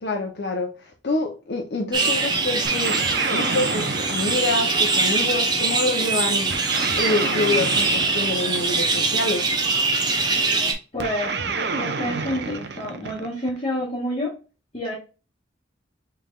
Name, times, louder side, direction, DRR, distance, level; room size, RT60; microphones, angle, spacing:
voice 1, 0.0-6.5 6.9-9.5, left 2 dB, 60° left, 0 dB, 0.8 m, -27 dB
sound 1, 1.9-10.7, right 3 dB, 25° right, 0.8 m, -23 dB
sound 2, 2.6-5.3 6.5-9.1 11.0-13.6, right 4 dB, 60° right, 0.6 m, -29 dB
voice 2, 10.9-14.4 14.7-14.9, left 1 dB, 30° left, -6 dB, 1.5 m, -29 dB
5.7 x 3.4 x 2.4 m, 0.32 s
head